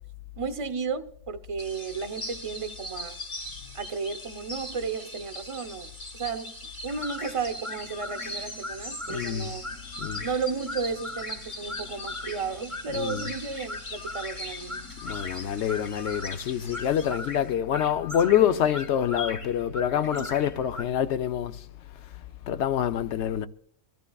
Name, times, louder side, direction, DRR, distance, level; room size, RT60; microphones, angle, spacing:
voice 1, 0.4-3.2 3.7-6.6 6.8-9.6 10.2-14.9 20.1-20.3, right 5 dB, 30° right, 0.8 m, -33 dB
sound 1, 1.6-17.5, left 1 dB, 45° left, 2.0 m, -42 dB
sound 2, 6.9-20.8, left 2 dB, 30° left, 0.9 m, -39 dB
voice 2, 9.1-9.5 10.0-10.3 12.9-13.3 15.0-21.7 22.4-23.5, left 10 dB, 65° left, 0.9 m, -26 dB
24.5 x 14.0 x 2.3 m
omnidirectional pair, 1.3 m